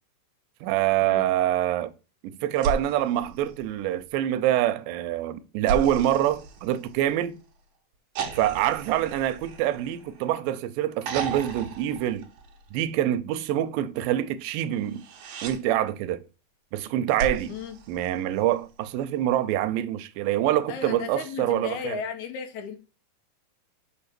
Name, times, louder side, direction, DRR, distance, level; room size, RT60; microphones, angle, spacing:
voice 1, 0.6-1.9 2.2-7.4 8.4-12.3 12.7-15.0 15.4-16.2 16.7-17.5 17.9-22.0, right 12 dB, 90° right, 2.4 m, -25 dB
sound 1, 2.6-4.2 5.7-7.3 8.2-10.4 11.0-12.8 14.8-15.6 17.2-18.7 20.2-20.3, right 4 dB, 70° right, 1.6 m, -35 dB
voice 2, 17.5-17.8 20.7-22.8, left 6 dB, 70° left, 2.1 m, -35 dB
5.5 x 3.6 x 5.8 m
omnidirectional pair, 4.0 m